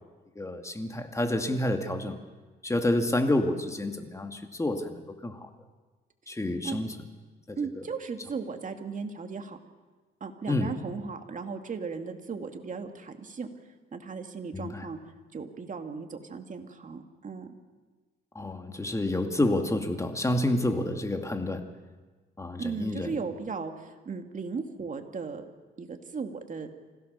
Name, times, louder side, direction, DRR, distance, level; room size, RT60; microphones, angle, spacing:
voice 1, 0.4-2.2 2.6-5.5 6.3-7.0 7.5-7.8 10.5-10.7 14.5-14.9 18.3-21.7 22.4-23.1, left 1 dB, 15° left, 6 dB, 2.3 m, -29 dB
voice 2, 7.6-9.6 10.2-13.5 13.9-15.0 15.3-17.5 22.6-25.5 25.8-26.7, right 5 dB, 40° right, 5 dB, 2.3 m, -36 dB
26.0 x 16.5 x 6.9 m, 1.3 s
cardioid pair, 90°, 20 cm